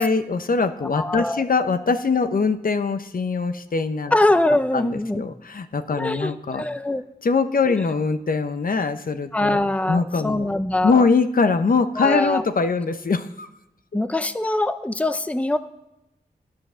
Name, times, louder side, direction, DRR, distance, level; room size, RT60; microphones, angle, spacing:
voice 1, 0.0-4.1 4.7-6.6 7.2-9.6 9.9-10.5 10.8-13.5, left 4 dB, 60° left, 10 dB, 0.8 m, -22 dB
voice 2, 0.9-1.4 4.1-5.2 6.0-7.0 9.3-11.1 12.0-12.4 13.9-15.6, left 1 dB, 10° left, 11 dB, 0.6 m, -23 dB
11.0 x 7.6 x 6.3 m, 0.92 s
cardioid pair, 55°, 17 cm